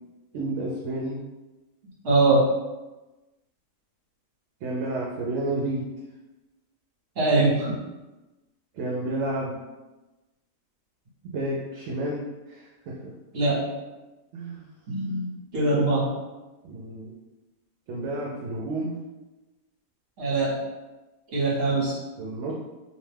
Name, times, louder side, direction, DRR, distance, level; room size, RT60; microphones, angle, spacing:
voice 1, 0.3-1.2 4.6-5.9 8.7-9.6 11.2-13.1 14.3-14.7 16.6-17.1 17.9-18.9 22.2-22.5, right 2 dB, 70° right, -3 dB, 0.8 m, -31 dB
voice 2, 2.0-2.5 7.2-7.8 13.3-13.6 14.9-15.3 15.5-16.1 20.2-20.6 21.3-22.0, right 2 dB, 50° right, -5 dB, 1.1 m, -22 dB
2.8 x 2.2 x 3.3 m, 1.1 s
omnidirectional pair, 1.4 m